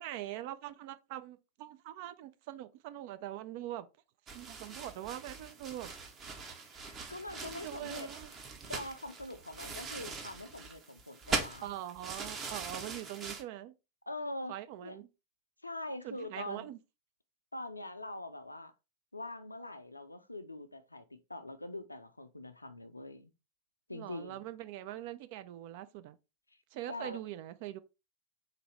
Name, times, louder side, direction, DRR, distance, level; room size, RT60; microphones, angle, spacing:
voice 1, 0.0-3.9 4.3-5.9 7.4-8.3 11.6-13.7 14.5-15.1 16.0-16.8 23.9-26.2 26.7-27.8, right 13 dB, 50° right, 0.3 m, -43 dB
sound 1, 4.3-13.4, right 4 dB, 25° right, 0.8 m, -41 dB
voice 2, 6.7-8.1 8.7-11.7 14.1-14.5 14.8-15.0 15.6-16.7 17.5-18.7 19.1-23.3 23.9-24.4 26.9-27.2, left 2 dB, 85° left, 0.4 m, -43 dB
3.9 x 2.7 x 3.1 m
figure-of-eight pair, 90°, 0 cm